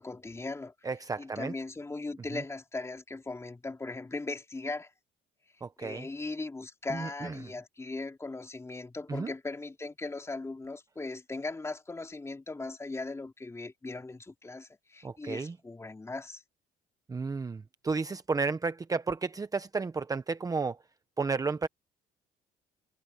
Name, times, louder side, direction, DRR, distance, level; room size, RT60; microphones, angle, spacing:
voice 1, 0.0-0.7 1.2-4.9 5.8-16.4, left 3 dB, 15° left, 3.1 m, -38 dB
voice 2, 0.8-1.5 2.3-2.4 5.6-6.1 6.9-7.4 9.1-9.3 15.0-15.6 17.1-20.8 21.2-21.7, right 4 dB, 20° right, 0.9 m, -32 dB
cardioid pair, 110°, 17 cm